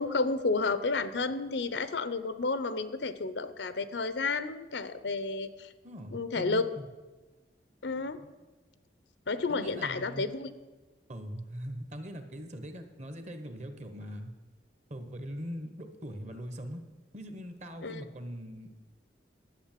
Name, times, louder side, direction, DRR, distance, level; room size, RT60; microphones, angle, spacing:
voice 1, 0.0-5.7 6.1-6.6 7.8-8.2 9.3-10.5 17.8-18.1, left 3 dB, 80° left, 13 dB, 0.7 m, -31 dB
voice 2, 5.8-6.9 8.2-8.3 9.5-10.2 11.1-14.3 14.9-16.8 17.1-18.7, equal, 40° right, 8 dB, 1.2 m, -41 dB
11.5 x 8.1 x 7.5 m, 1.2 s
head